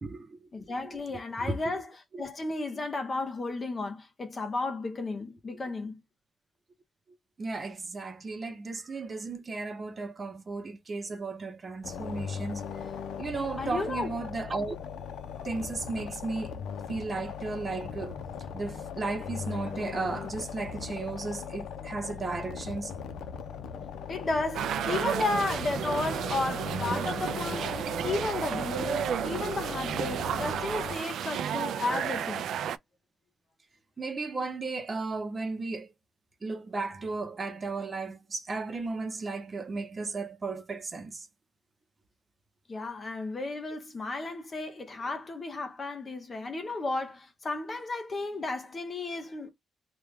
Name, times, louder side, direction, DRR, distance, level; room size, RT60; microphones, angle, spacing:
voice 1, 0.0-0.5 0.8-1.0 1.4-1.6 2.1-2.2 7.4-12.6 13.2-14.7 15.4-18.2 18.5-23.0 34.0-35.9 36.4-41.3, right 3 dB, 25° right, 0.8 m, -35 dB
voice 2, 0.5-1.9 2.2-6.0 13.6-14.2 24.1-32.5 42.7-49.5, left 3 dB, 25° left, 0.7 m, -33 dB
sound 1, 11.8-31.0, left 7 dB, 85° left, 0.6 m, -39 dB
sound 2, 24.5-32.8, right 9 dB, 75° right, 0.3 m, -32 dB
3.3 x 2.3 x 3.5 m
cardioid pair, 150°, 0 cm